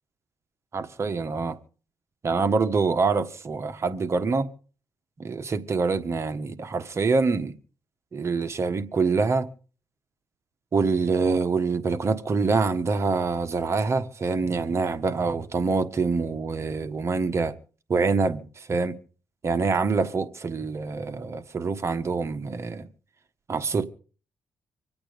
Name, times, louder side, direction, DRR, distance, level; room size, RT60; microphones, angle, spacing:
voice 1, 0.7-1.6 2.2-4.5 5.2-7.5 8.1-9.5 10.7-17.5 17.9-18.9 19.4-22.9 23.5-23.8, right 4 dB, 40° right, 1.4 m, -25 dB
25.5 x 8.7 x 5.3 m
cardioid pair, 90°, 7 cm